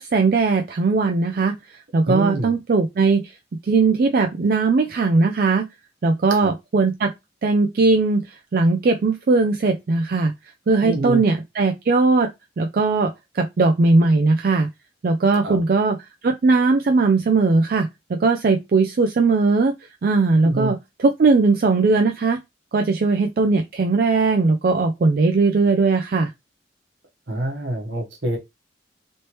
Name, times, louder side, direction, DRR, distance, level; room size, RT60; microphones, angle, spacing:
voice 1, 0.0-1.5 1.9-3.2 3.7-5.6 6.0-7.1 7.4-8.2 8.5-10.3 10.7-12.3 12.6-13.1 13.4-14.7 15.0-16.0 16.2-19.7 20.0-22.4 22.7-26.3, right 3 dB, 50° right, 0.3 m, -19 dB
voice 2, 2.1-2.5 6.3-6.5 10.8-11.2 15.4-15.6 20.4-20.7 27.3-28.4, right 2 dB, 75° right, 1.0 m, -26 dB
3.2 x 3.0 x 2.9 m
head